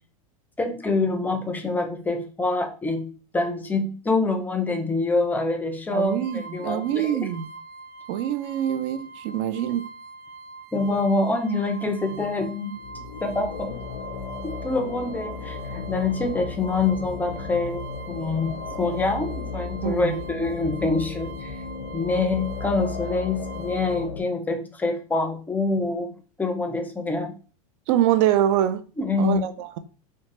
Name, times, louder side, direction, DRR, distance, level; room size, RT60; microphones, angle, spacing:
voice 1, 0.6-3.1 3.3-7.1 10.7-12.8 13.2-13.8 14.4-17.8 18.1-21.6 21.9-26.1 26.4-27.3 29.0-29.5, left 3 dB, 10° left, 0.4 m, -26 dB
voice 2, 5.9-7.5 8.1-9.9 19.8-20.2 27.9-28.8 29.2-29.8, right 11 dB, 55° right, 0.4 m, -24 dB
sound 1, 6.0-24.0, right 3 dB, 40° right, 1.5 m, -43 dB
sound 2, 12.7-24.2, left 4 dB, 90° left, 0.6 m, -35 dB
2.8 x 2.2 x 2.9 m
hypercardioid pair, 115°, 19 cm